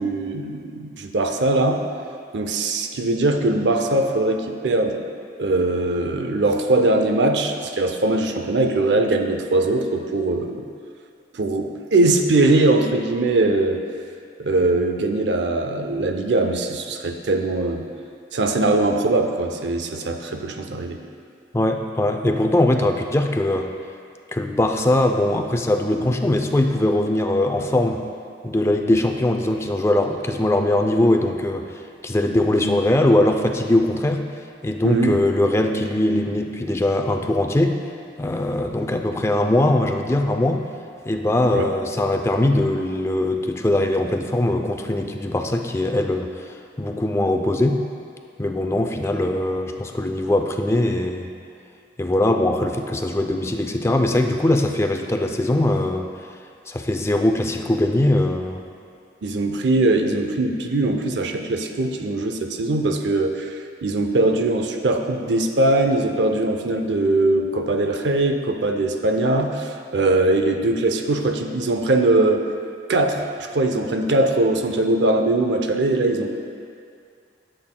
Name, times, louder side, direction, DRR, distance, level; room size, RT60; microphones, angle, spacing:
voice 1, 0.0-1.8 2.3-5.0 5.4-10.6 11.3-13.8 14.4-17.8 18.3-21.0 34.8-35.2 41.5-41.7 59.2-72.4 72.9-76.3, right 2 dB, 75° right, 5 dB, 0.6 m, -21 dB
voice 2, 21.5-23.7 24.3-28.0 28.4-34.2 34.6-37.8 38.2-40.6 41.1-46.5 46.8-47.8 48.4-51.3 52.0-56.1 56.7-58.6, left 1 dB, 15° left, 4 dB, 0.4 m, -21 dB
12.0 x 7.7 x 2.2 m, 2.3 s
head